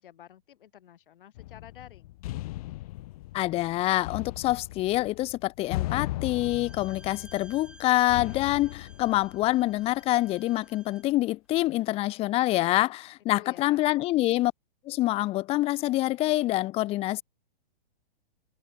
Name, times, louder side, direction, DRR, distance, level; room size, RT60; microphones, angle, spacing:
voice 1, 0.0-2.2 13.4-13.9, left 11 dB, 60° left, 7.7 m, -51 dB
sound 1, 1.4-10.0, left 17 dB, 40° left, 1.1 m, -38 dB
voice 2, 3.3-14.5 14.8-17.2, left 17 dB, 20° left, 1.3 m, -26 dB
Bowed string instrument, 6.3-11.2, right 2 dB, 5° right, 4.2 m, -55 dB
hypercardioid pair, 155°, 30 cm